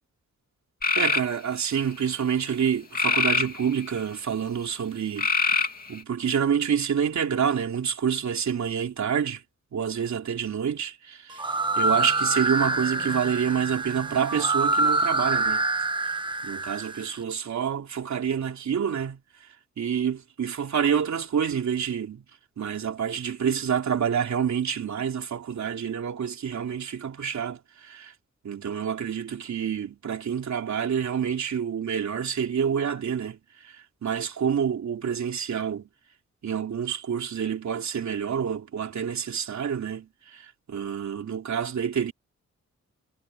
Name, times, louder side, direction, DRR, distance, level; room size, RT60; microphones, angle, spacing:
sound 1, 0.8-1.3 2.9-4.0 5.2-6.0, left 4 dB, 30° left, 2.6 m, -24 dB
voice 1, 1.0-9.4 9.7-15.6 16.4-19.2 19.8-22.2 22.6-28.1 28.4-35.9 36.4-42.1, right 8 dB, 75° right, 3.1 m, -28 dB
sound 2, 11.3-17.1, right 2 dB, 15° right, 1.4 m, -26 dB
wide cardioid pair, 175°, 29 cm